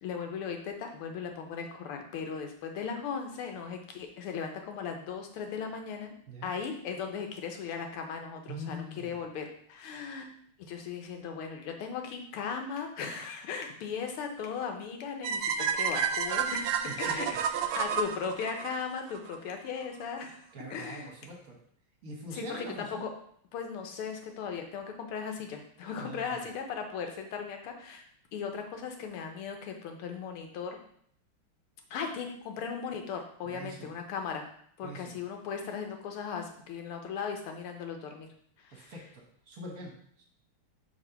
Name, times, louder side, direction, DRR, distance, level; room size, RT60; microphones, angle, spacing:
voice 1, 0.0-6.1 6.4-10.3 10.6-17.3 17.7-20.4 20.7-21.1 22.3-23.1 23.5-28.0 28.3-30.8 31.9-34.4 34.8-38.3 38.6-38.9, left 6 dB, 80° left, 4 dB, 1.8 m, -37 dB
voice 2, 8.5-9.2 16.8-17.2 20.5-21.6 22.0-23.0 26.0-26.5 33.4-33.9 34.8-35.1 38.7-40.2, right 1 dB, 50° right, 0 dB, 1.3 m, -43 dB
sound 1, 15.2-19.4, right 7 dB, 85° right, 1.5 m, -30 dB
5.1 x 3.4 x 5.6 m, 0.63 s
omnidirectional pair, 2.4 m